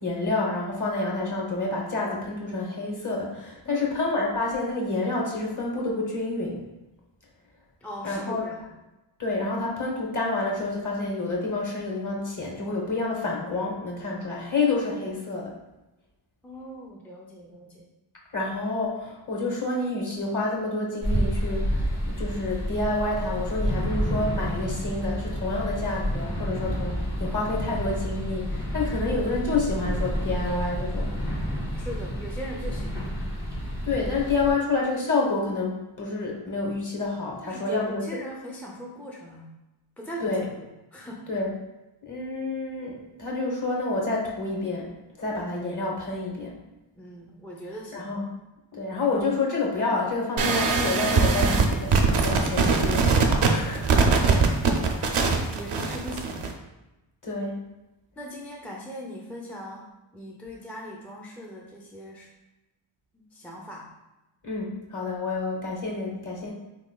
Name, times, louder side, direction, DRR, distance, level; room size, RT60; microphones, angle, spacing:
voice 1, 0.0-6.6 8.0-8.5 9.2-15.5 18.3-31.2 33.8-38.0 40.2-40.4 41.3-41.5 42.0-44.9 45.2-46.6 47.9-48.2 48.7-54.0 57.2-57.6 64.4-66.5, left 3 dB, 40° left, -2 dB, 1.0 m, -28 dB
voice 2, 7.8-8.7 16.4-17.9 31.7-33.1 37.4-39.5 40.0-41.3 46.9-48.1 55.5-56.5 58.2-62.3 63.1-63.9, equal, 5° left, -3 dB, 0.4 m, -40 dB
sound 1, 21.0-34.5, equal, 85° left, 1.3 m, -29 dB
sound 2, 50.4-56.5, right 4 dB, 75° right, 0.6 m, -22 dB
3.6 x 3.1 x 2.2 m, 1.0 s
wide cardioid pair, 60°, 50 cm